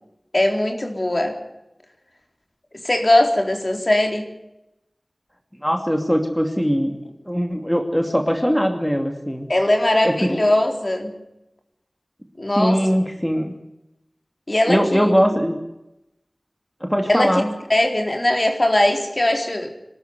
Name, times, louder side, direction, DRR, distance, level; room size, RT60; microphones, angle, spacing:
voice 1, 0.3-1.3 2.8-4.2 9.5-11.1 12.4-12.9 14.5-15.1 17.1-17.4 17.7-19.7, left 1 dB, 40° left, 4 dB, 4.1 m, -20 dB
voice 2, 5.6-6.9 7.3-9.5 10.0-10.4 12.6-13.5 14.7-15.6 16.8-17.5, equal, 5° left, 4 dB, 2.7 m, -21 dB
25.0 x 13.0 x 9.5 m, 0.90 s
wide cardioid pair, 60°, 0 cm